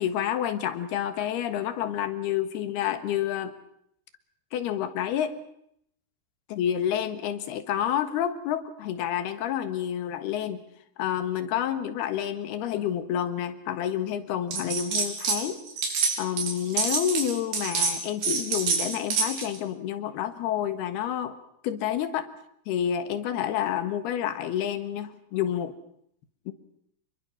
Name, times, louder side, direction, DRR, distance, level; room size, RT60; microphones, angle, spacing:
voice 1, 0.0-3.5 4.5-5.4 6.5-10.6 11.0-15.6 16.2-21.4 21.6-22.3 22.7-25.8 26.5-26.6, left 10 dB, 85° left, 9 dB, 3.5 m, -29 dB
sound 1, 14.5-15.4 15.7-19.6, right 5 dB, 70° right, 5.5 m, -27 dB
27.5 x 22.0 x 6.2 m, 0.71 s
omnidirectional pair, 4.5 m